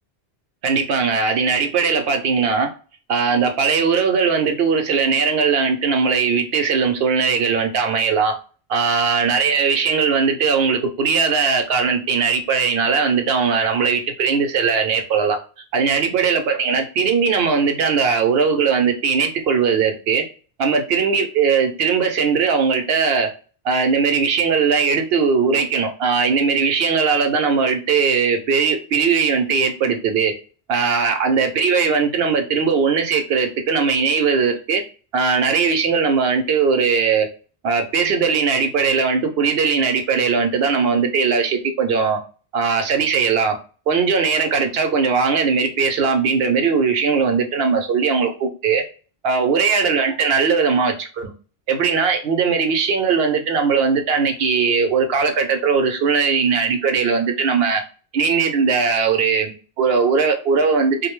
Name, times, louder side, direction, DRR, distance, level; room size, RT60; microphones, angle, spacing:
voice 1, 0.6-2.7 3.1-8.4 8.7-15.4 15.7-20.2 20.6-23.3 23.6-30.3 30.7-34.8 35.1-37.3 37.6-42.2 42.5-43.6 43.9-48.8 49.2-51.3 51.7-57.8 58.1-61.1, right 5 dB, 70° right, 0.8 m, -19 dB
2.5 x 2.1 x 3.0 m
omnidirectional pair, 1.1 m